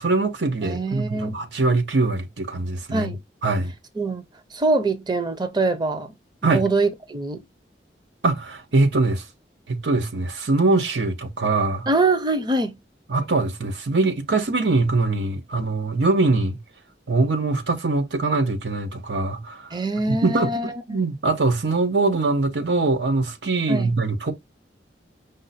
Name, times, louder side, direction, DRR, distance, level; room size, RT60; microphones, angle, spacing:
voice 1, 0.0-3.1 3.4-3.7 6.4-6.6 8.2-9.2 9.7-11.9 13.1-16.6 17.1-19.7 20.1-24.3, right 3 dB, 85° right, 0.9 m, -22 dB
voice 2, 0.6-1.3 2.9-3.2 4.0-4.2 4.5-6.1 6.4-7.4 11.9-12.8 19.7-21.0 23.7-23.9, right 3 dB, 25° right, 0.6 m, -24 dB
5.2 x 2.2 x 4.0 m
head